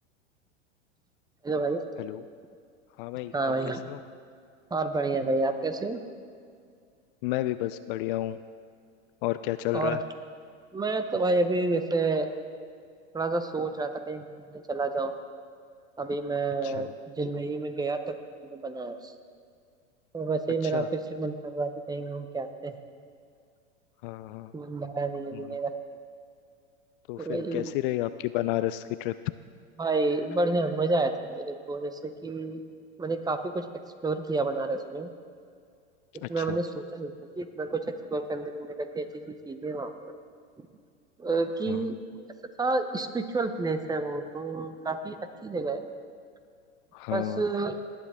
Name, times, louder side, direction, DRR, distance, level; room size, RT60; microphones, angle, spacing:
voice 1, 1.4-1.8 3.3-3.8 4.7-6.0 9.7-10.0 10.7-12.3 13.1-14.3 14.7-15.1 16.0-18.1 18.4-19.1 20.1-22.8 24.5-25.7 27.2-27.7 29.8-32.6 33.0-33.7 34.0-35.1 36.3-37.8 38.1-40.1 41.2-42.0 42.6-45.2 45.4-45.9 47.1-47.8, right 3 dB, 10° right, 9 dB, 0.7 m, -29 dB
voice 2, 3.0-3.5 3.9-4.0 7.2-8.4 9.2-10.0 16.6-16.8 20.7-20.9 24.0-24.5 27.1-29.1 36.2-36.6 41.7-41.8 46.9-47.4, left 15 dB, 50° left, 13 dB, 0.4 m, -31 dB
19.0 x 9.8 x 3.6 m, 2.2 s
hypercardioid pair, 105°, 35 cm